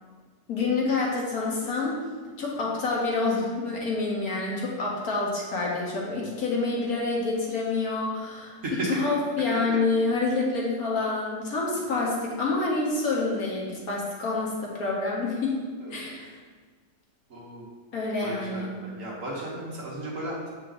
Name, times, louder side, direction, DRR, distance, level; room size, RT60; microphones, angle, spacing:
voice 1, 0.5-2.0 2.4-8.6 9.0-15.5 15.9-16.3 17.9-18.7, left 3 dB, 60° left, -3 dB, 1.5 m, -27 dB
voice 2, 8.6-9.0 9.5-9.8 15.8-16.1 17.3-17.6 18.2-20.5, right 1 dB, 50° right, -4 dB, 1.6 m, -34 dB
7.4 x 4.7 x 3.9 m, 1.5 s
omnidirectional pair, 1.9 m